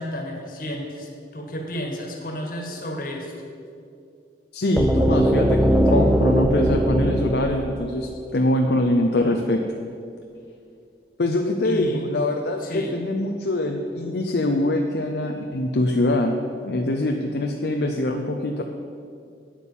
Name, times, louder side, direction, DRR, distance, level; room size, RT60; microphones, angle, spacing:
voice 1, 0.0-3.3 11.6-12.1 12.6-13.0, equal, 50° left, 1 dB, 1.8 m, -32 dB
voice 2, 4.5-9.6 11.2-16.4 16.6-18.6, left 1 dB, 65° left, 3 dB, 0.7 m, -23 dB
sound 1, 4.8-8.7, right 1 dB, 5° right, 0.4 m, -20 dB
9.0 x 8.2 x 7.3 m, 2.4 s
head